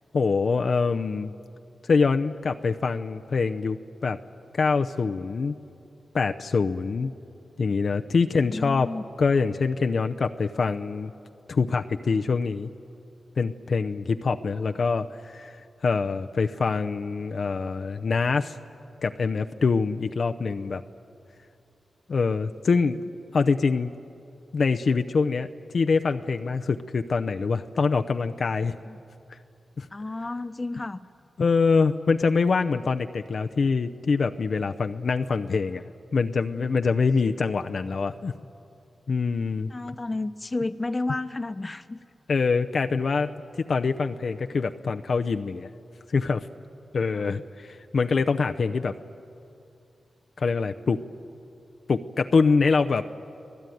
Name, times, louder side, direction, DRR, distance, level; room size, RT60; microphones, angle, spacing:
voice 1, 0.1-1.3 1.8-3.8 4.0-4.2 4.5-5.6 6.1-7.1 7.6-8.9 9.2-11.1 11.5-12.7 13.4-18.6 19.0-20.8 22.1-23.9 24.5-28.8 29.3-29.4 29.8-29.9 31.4-35.8 36.1-38.3 39.1-39.7 42.3-45.7 46.1-46.5 46.9-48.9 50.4-51.0 51.9-53.1, left 4 dB, 65° left, 7 dB, 0.7 m, -24 dB
voice 2, 8.2-9.0 28.9-29.0 29.9-31.0 39.7-42.0 47.1-47.3, left 2 dB, 30° left, 12 dB, 1.0 m, -32 dB
25.5 x 18.0 x 9.3 m, 2.7 s
cardioid pair, 45°, 0 cm